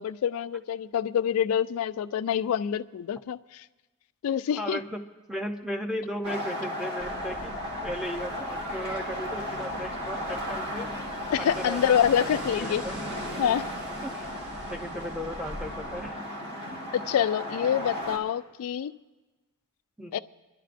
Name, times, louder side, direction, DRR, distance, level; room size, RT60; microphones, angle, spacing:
voice 1, 0.0-3.4 4.2-4.8 11.3-12.8 13.4-13.6 16.9-18.9 20.1-20.2, left 9 dB, 85° left, 14 dB, 0.3 m, -26 dB
voice 2, 4.6-5.0 5.3-7.5 7.8-10.9 11.4-12.3 12.6-12.9 14.0-14.3 14.7-16.2 20.0-20.2, equal, ahead, 4 dB, 0.6 m, -36 dB
sound 1, 6.2-18.2, left 1 dB, 50° right, 1.6 m, -35 dB
sound 2, 7.0-16.1, right 1 dB, 85° right, 4.5 m, -42 dB
28.5 x 11.0 x 2.5 m, 1.2 s
head